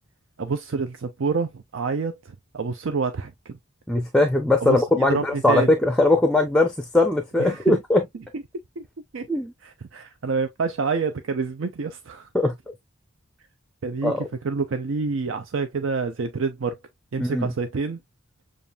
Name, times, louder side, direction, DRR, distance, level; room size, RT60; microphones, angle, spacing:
voice 1, 0.4-3.6 4.6-5.7 7.4-7.8 8.3-8.4 8.8-8.9 9.1-9.3 9.6-12.3 13.8-16.8 17.1-18.0, right 4 dB, 70° right, 0.5 m, -28 dB
voice 2, 3.9-8.0 9.3-9.5 12.3-12.5 14.0-14.2 17.2-17.5, left 2 dB, 5° left, 0.6 m, -20 dB
7.0 x 2.5 x 2.3 m
head